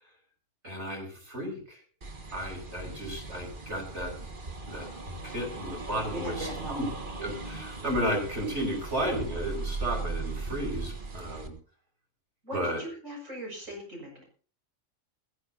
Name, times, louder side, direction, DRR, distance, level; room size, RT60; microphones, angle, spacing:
voice 1, 0.6-1.8 2.3-4.3 4.6-4.9 5.2-6.9 7.2-11.5 12.5-12.8, equal, 60° right, 2 dB, 6.5 m, -33 dB
sound 1, 2.0-11.5, right 3 dB, 40° right, 1.8 m, -38 dB
voice 2, 6.1-6.9 12.4-14.2, equal, 85° right, 0 dB, 7.3 m, -39 dB
21.0 x 15.0 x 2.9 m, 0.41 s
omnidirectional pair, 1.3 m